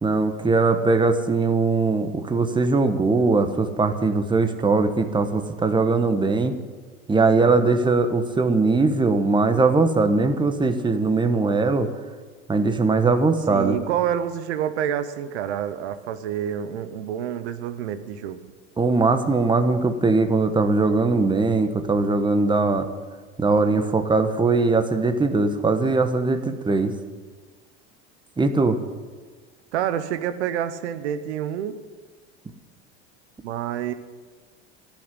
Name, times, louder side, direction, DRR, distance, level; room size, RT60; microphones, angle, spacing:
voice 1, 0.0-6.6 7.1-11.9 12.5-13.8 18.8-22.9 23.4-26.9 28.4-28.8, right 3 dB, 15° right, 8 dB, 1.2 m, -20 dB
voice 2, 13.5-18.4 29.7-31.8 33.4-33.9, right 10 dB, 85° right, 11 dB, 1.0 m, -28 dB
13.5 x 6.2 x 9.9 m, 1.4 s
supercardioid pair, 95°, 33 cm